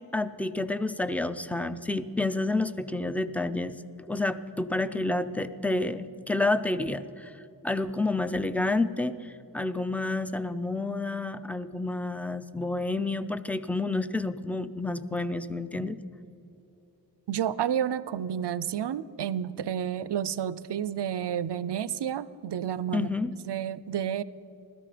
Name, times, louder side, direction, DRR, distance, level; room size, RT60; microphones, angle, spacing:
voice 1, 0.1-3.7 4.1-7.3 7.6-16.0 22.9-23.3, left 2 dB, 5° left, 12 dB, 0.4 m, -29 dB
voice 2, 17.3-24.2, right 9 dB, 80° right, 17 dB, 0.5 m, -30 dB
16.5 x 13.0 x 5.0 m, 3.0 s
wide cardioid pair, 95°, 40 cm